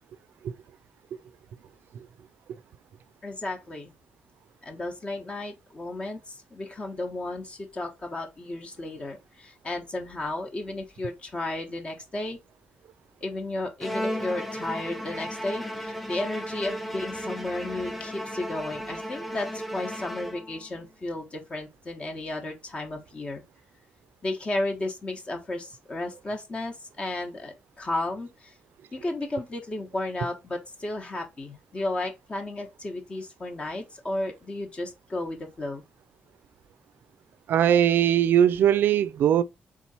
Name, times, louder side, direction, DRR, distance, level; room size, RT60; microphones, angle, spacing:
voice 1, 3.2-3.9 4.6-12.4 13.2-23.4 24.2-28.6 28.9-35.8, left 2 dB, 30° left, 1.0 m, -33 dB
Bowed string instrument, 13.8-20.8, equal, ahead, 0.8 m, -35 dB
voice 2, 37.5-39.4, right 10 dB, 70° right, 0.4 m, -20 dB
3.7 x 3.0 x 4.1 m
cardioid pair, 110°, 4 cm